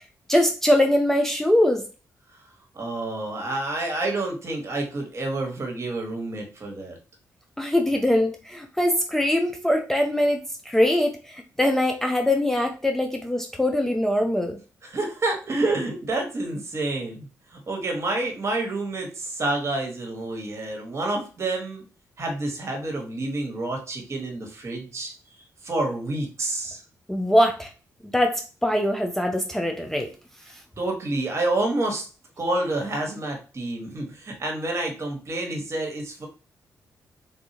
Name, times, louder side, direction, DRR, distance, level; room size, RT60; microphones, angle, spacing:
voice 1, 0.3-1.9 7.6-14.6 27.1-27.7 28.1-30.1, left 1 dB, 5° left, 3 dB, 0.5 m, -22 dB
voice 2, 2.7-7.0 14.8-17.3 17.5-21.8 22.2-25.1 25.6-26.8 30.8-32.0 32.4-36.3, right 2 dB, 45° right, 2 dB, 1.3 m, -28 dB
3.6 x 2.6 x 2.8 m, 0.34 s
cardioid pair, 70°, 6 cm